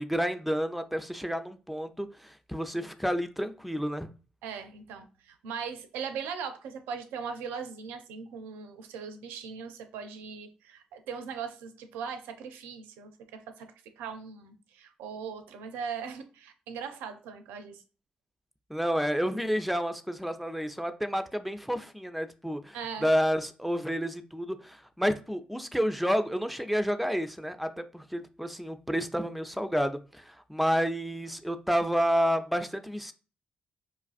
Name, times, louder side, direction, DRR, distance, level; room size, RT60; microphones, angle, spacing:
voice 1, 0.0-4.1 18.7-33.1, equal, ahead, 0.5 m, -30 dB
voice 2, 4.4-13.7 14.0-17.8 22.7-23.1, right 6 dB, 85° right, 0.4 m, -39 dB
5.2 x 2.4 x 2.4 m
hypercardioid pair, 45°, 3 cm